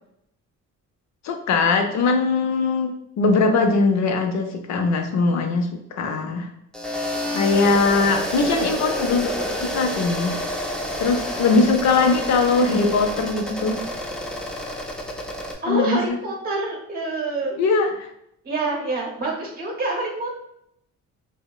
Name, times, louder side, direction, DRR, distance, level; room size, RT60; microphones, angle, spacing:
voice 1, 1.2-6.5 7.3-9.5 9.7-10.4 11.0-13.8 15.7-16.0 17.6-18.1, left 4 dB, 65° left, 5 dB, 0.5 m, -21 dB
sound 1, 6.7-15.5, equal, 5° left, 0.4 m, -29 dB
voice 2, 7.9-8.6 12.4-12.8 15.4-17.6 18.4-20.3, right 2 dB, 30° right, -1 dB, 0.8 m, -27 dB
2.8 x 2.0 x 2.3 m, 0.75 s
cardioid pair, 90°, 30 cm